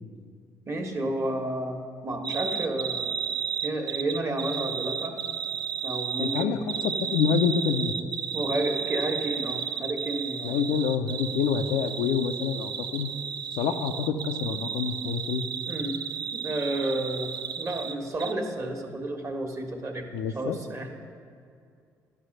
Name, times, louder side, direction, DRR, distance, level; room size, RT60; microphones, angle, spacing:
voice 1, 0.7-3.2 3.6-5.2 5.8-6.6 8.3-10.6 15.7-16.0 16.3-17.3 17.6-20.9, right 1 dB, 35° right, 4 dB, 1.4 m, -31 dB
sound 1, 2.2-17.9 18.2-18.3, right 7 dB, 55° right, 0.6 m, -33 dB
voice 2, 6.2-7.9 10.4-13.1 13.5-15.4 20.1-20.6, left 6 dB, 70° left, 7 dB, 0.5 m, -27 dB
11.0 x 5.7 x 6.5 m, 2.3 s
hypercardioid pair, 50°, 9 cm